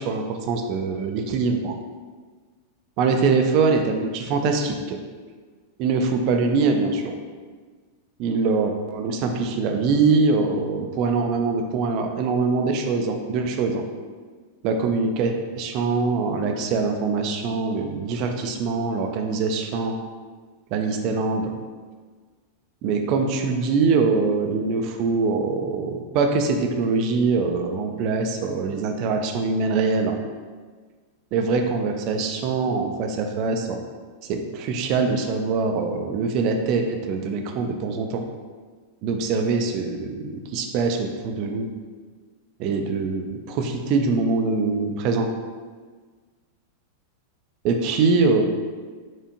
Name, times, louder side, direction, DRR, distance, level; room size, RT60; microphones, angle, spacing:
voice 1, 0.0-1.8 3.0-5.0 5.8-7.2 8.2-13.8 14.6-19.9 20.7-21.5 22.8-30.2 31.3-33.8 34.3-38.2 39.0-41.6 42.6-45.3 47.6-48.4, right 4 dB, 40° right, 4 dB, 0.4 m, -23 dB
4.4 x 2.5 x 2.7 m, 1.5 s
figure-of-eight pair, 90°, 0 cm